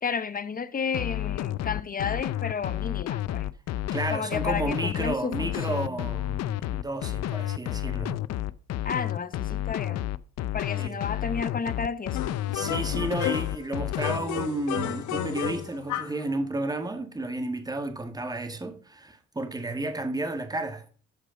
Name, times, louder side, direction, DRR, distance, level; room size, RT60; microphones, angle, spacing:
voice 1, 0.0-3.5 4.1-6.0 8.8-10.1 10.5-12.2, left 5 dB, 30° left, 0.9 m, -32 dB
sound 1, 0.9-14.2, left 13 dB, 60° left, 0.6 m, -30 dB
voice 2, 3.9-8.2 10.8-11.0 12.5-20.9, right 2 dB, 15° right, 1.8 m, -32 dB
sound 2, 12.1-13.6 14.0-16.2, left 10 dB, 85° left, 1.0 m, -32 dB
13.0 x 4.9 x 3.8 m
cardioid pair, 90°, 29 cm